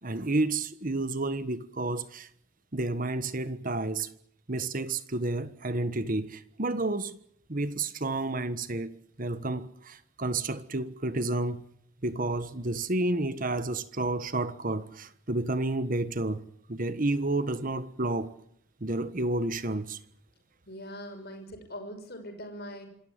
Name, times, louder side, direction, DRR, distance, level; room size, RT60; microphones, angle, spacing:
voice 1, 0.0-2.3 2.7-4.1 4.5-7.1 7.5-11.6 12.0-16.4 16.7-18.3 18.8-20.0, right 2 dB, 40° right, 1.4 m, -30 dB
voice 2, 20.7-22.9, equal, 50° left, 6.0 m, -41 dB
26.5 x 14.0 x 9.8 m
head